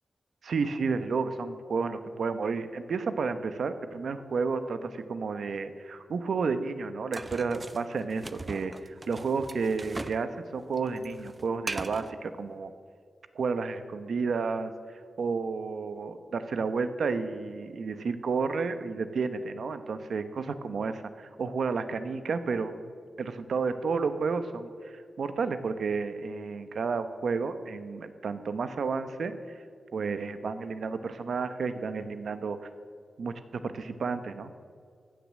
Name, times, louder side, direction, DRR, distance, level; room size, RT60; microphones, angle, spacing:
voice 1, 0.4-12.7 13.3-14.7 15.2-22.7 23.2-29.3 29.9-32.7 33.2-34.5, right 4 dB, 65° right, 10 dB, 0.9 m, -31 dB
sound 1, 7.1-10.3 10.5-12.1, right 2 dB, 20° right, 0.4 m, -39 dB
15.5 x 10.5 x 7.5 m, 2.1 s
wide cardioid pair, 180°, 0 cm